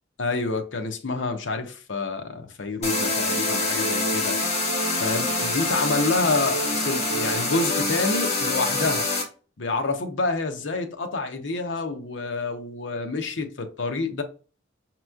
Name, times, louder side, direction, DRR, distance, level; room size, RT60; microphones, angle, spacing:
voice 1, 0.2-4.4 5.0-9.1 9.6-14.2, left 3 dB, 70° left, 0.7 m, -28 dB
sound 1, 2.8-9.2, left 2 dB, 35° left, 1.4 m, -25 dB
5.2 x 3.0 x 2.3 m
head